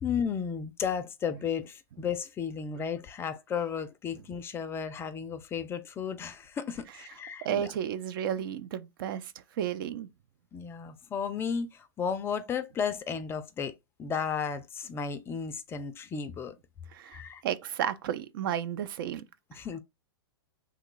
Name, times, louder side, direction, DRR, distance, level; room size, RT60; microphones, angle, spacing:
voice 1, 0.0-7.7 10.5-13.7 14.0-16.5 17.1-17.4 19.5-19.8, left 7 dB, 20° left, 0.4 m, -34 dB
voice 2, 7.4-10.1 16.9-19.2, right 9 dB, 55° right, 0.5 m, -33 dB
3.1 x 2.3 x 3.7 m
hypercardioid pair, 125°, 13 cm